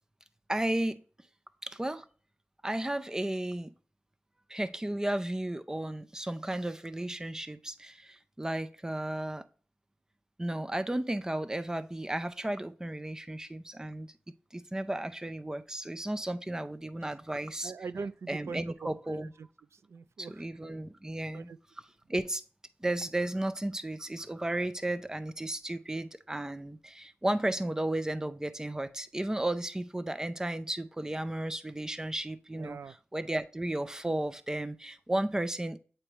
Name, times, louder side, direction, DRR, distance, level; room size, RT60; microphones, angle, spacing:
voice 1, 0.5-1.0 1.6-2.1 2.6-3.7 4.5-9.4 10.4-14.1 14.5-17.7 18.3-19.3 20.2-21.5 22.1-22.4 22.8-35.8, right 1 dB, 15° right, 0.4 m, -34 dB
voice 2, 17.6-20.4 21.3-21.6 32.5-33.0, right 5 dB, 85° right, 0.3 m, -42 dB
8.4 x 4.4 x 3.0 m
wide cardioid pair, 100°, 5 cm